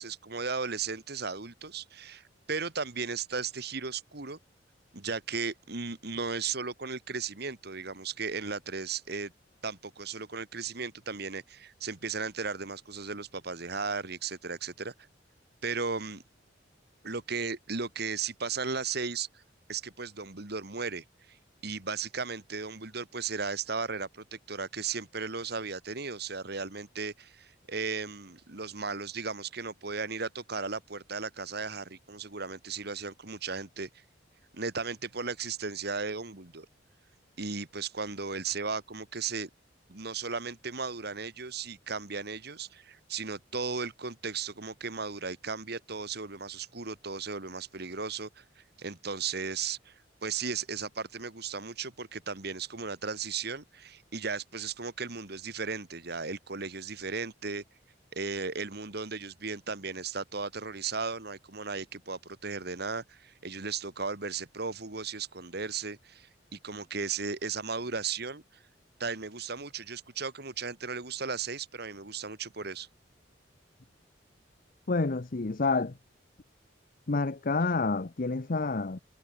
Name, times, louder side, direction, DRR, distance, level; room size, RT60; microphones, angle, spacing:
voice 1, 0.0-4.4 4.9-9.3 9.6-14.9 15.6-16.2 17.0-19.4 19.7-21.4 21.6-33.9 34.5-36.7 37.4-39.5 39.9-48.4 48.8-57.6 58.1-68.4 69.0-72.9, right 5 dB, 60° right, 2.1 m, -36 dB
voice 2, 74.9-75.9 77.1-79.0, left 3 dB, 50° left, 0.8 m, -28 dB
head